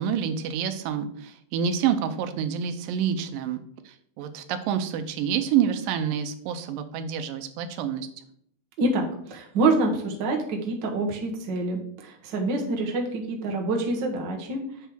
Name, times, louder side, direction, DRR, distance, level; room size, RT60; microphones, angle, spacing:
voice 1, 0.0-3.6 3.9-8.1, right 8 dB, 85° right, 9 dB, 2.4 m, -28 dB
voice 2, 8.8-14.6, right 2 dB, 65° right, 0 dB, 1.1 m, -26 dB
7.3 x 3.4 x 6.0 m, 0.66 s
omnidirectional pair, 3.9 m